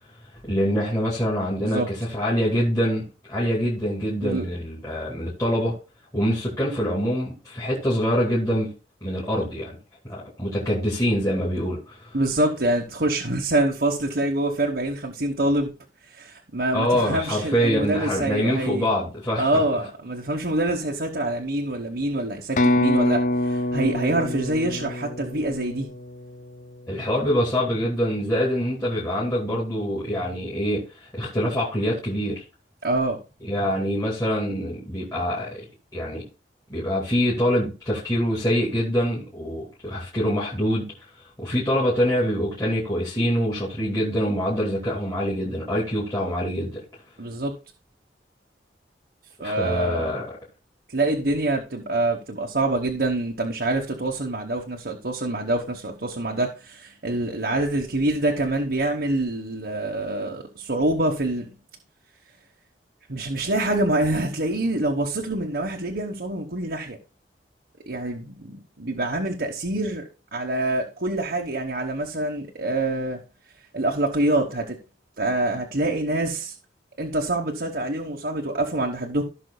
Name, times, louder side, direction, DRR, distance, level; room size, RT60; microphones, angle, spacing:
voice 1, 0.5-5.8 6.1-8.7 9.0-9.8 10.0-12.1 16.7-19.6 26.9-32.4 33.4-35.6 35.9-36.3 36.7-40.9 41.4-46.8 49.4-50.3, equal, 20° left, 2.6 m, -25 dB
voice 2, 12.1-15.7 16.1-18.9 19.4-25.9 32.8-33.2 47.2-47.5 49.4-50.1 50.9-61.5 63.1-67.0 67.9-70.0 70.3-73.2 73.7-74.8 75.2-76.5 77.0-79.2, right 2 dB, 60° right, 1.2 m, -25 dB
sound 1, 22.6-26.3, left 1 dB, 45° left, 0.4 m, -25 dB
16.0 x 6.1 x 2.3 m
head